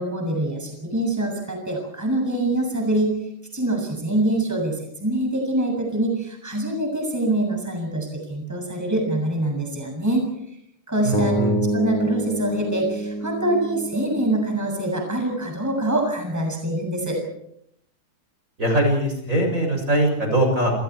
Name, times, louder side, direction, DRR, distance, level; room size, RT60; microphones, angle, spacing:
voice 1, 0.0-3.2 3.5-10.3 10.9-17.2, right 1 dB, 5° right, 2 dB, 7.2 m, -24 dB
voice 2, 11.0-11.5 18.6-20.7, right 1 dB, 25° right, 2 dB, 7.7 m, -21 dB
sound 1, 11.1-15.3, right 1 dB, 70° left, 5.1 m, -27 dB
30.0 x 29.5 x 4.8 m, 0.74 s
omnidirectional pair, 3.6 m